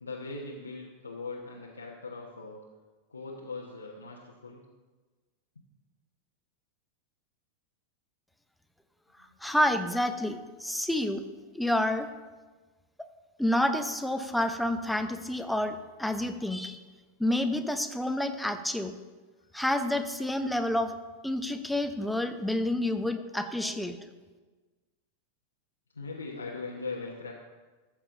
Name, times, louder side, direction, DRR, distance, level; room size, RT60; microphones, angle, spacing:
voice 1, 0.0-2.6 3.1-4.6 22.7-23.3 23.7-23.8 25.9-27.3, left 3 dB, 80° left, -3 dB, 1.1 m, -40 dB
voice 2, 9.4-11.3 11.5-12.1 13.0-13.1 13.4-16.8 17.2-19.0 19.5-20.9 21.2-24.0, left 1 dB, ahead, 8 dB, 0.7 m, -29 dB
14.0 x 7.3 x 3.7 m, 1.3 s
figure-of-eight pair, 90°, 0 cm